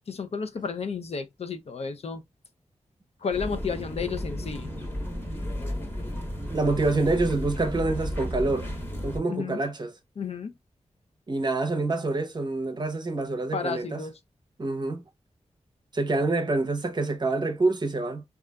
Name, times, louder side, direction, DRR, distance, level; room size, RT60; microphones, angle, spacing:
voice 1, 0.0-2.2 3.2-4.7 9.3-9.6 10.2-10.5 13.5-14.2, left 5 dB, 60° left, 0.5 m, -32 dB
sound 1, 3.3-9.2, equal, 20° left, 0.9 m, -33 dB
voice 2, 6.5-8.7 9.0-9.9 11.3-14.0 14.6-15.0 15.9-18.2, right 3 dB, 40° right, 0.6 m, -26 dB
3.8 x 2.4 x 2.2 m
wide cardioid pair, 120°, 12 cm